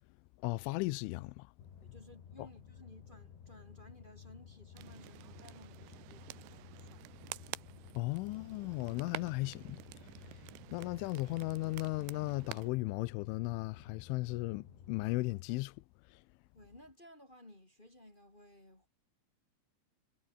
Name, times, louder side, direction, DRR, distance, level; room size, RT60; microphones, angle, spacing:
voice 1, 0.4-1.5 7.9-9.8 10.7-15.8 16.1-16.2, left 22 dB, 85° left, 3.0 m, -36 dB
sound 1, 1.6-15.4, left 8 dB, 60° left, 5.3 m, -55 dB
voice 2, 1.8-7.2 16.5-18.9, left 1 dB, 15° left, 2.0 m, -57 dB
sound 2, 4.8-12.7, right 19 dB, 80° right, 2.5 m, -49 dB
omnidirectional pair, 5.8 m